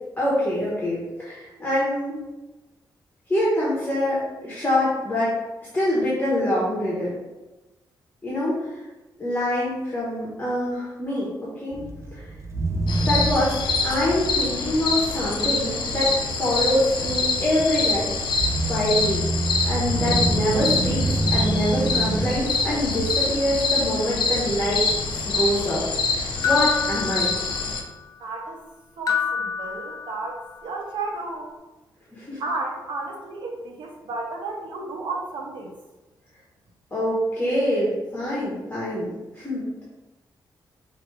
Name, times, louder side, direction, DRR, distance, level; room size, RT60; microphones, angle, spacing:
voice 1, 0.2-2.2 3.3-5.3 5.7-7.1 8.2-8.7 9.2-11.3 11.6-12.3 13.0-13.6 13.8-18.1 18.7-19.3 19.6-24.8 25.1-25.9 26.1-27.4 32.1-32.4 36.9-39.8, left 1 dB, 20° left, -7 dB, 1.1 m, -25 dB
sound 1, 11.7-26.7, right 2 dB, 35° right, 0.5 m, -29 dB
sound 2, 12.9-27.8, left 4 dB, 90° left, 0.7 m, -26 dB
sound 3, 26.4-27.9 29.1-30.5, left 7 dB, 50° left, 0.6 m, -27 dB
voice 2, 28.2-28.6 29.0-31.5 32.4-35.7, right 3 dB, 90° right, 0 dB, 0.9 m, -32 dB
4.9 x 2.7 x 3.3 m, 1.1 s
wide cardioid pair, 125°, 8 cm